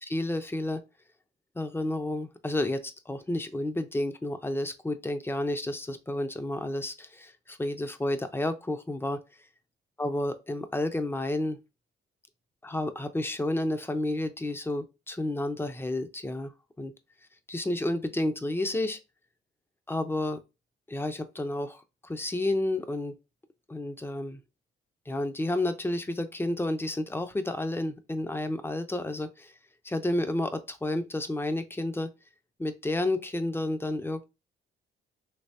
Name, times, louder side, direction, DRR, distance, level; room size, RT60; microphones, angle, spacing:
voice 1, 0.0-0.8 1.6-9.2 10.0-11.6 12.6-16.5 16.8-16.9 17.5-19.0 19.9-20.4 20.9-23.2 23.7-24.4 25.1-29.5 29.8-32.1 32.6-34.2, left 1 dB, 10° left, 0.5 m, -31 dB
3.3 x 3.0 x 2.7 m
cardioid pair, 90°, 20 cm